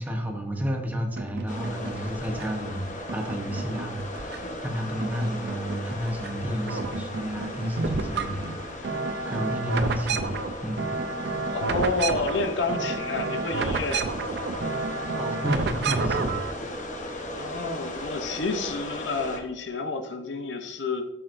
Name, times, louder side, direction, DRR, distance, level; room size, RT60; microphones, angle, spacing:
voice 1, 0.0-9.0 9.2-10.3 10.6-10.9 15.1-16.4, equal, 10° right, 2 dB, 0.9 m, -31 dB
sound 1, 1.2-2.6 3.1-4.7 5.0-6.3 6.6-16.5, right 3 dB, 65° right, 0.5 m, -31 dB
sound 2, 1.5-19.4, left 1 dB, 45° left, 0.9 m, -37 dB
voice 2, 11.5-14.1 17.3-21.0, left 3 dB, 80° left, 7 dB, 0.7 m, -29 dB
7.6 x 6.0 x 2.6 m, 0.96 s
head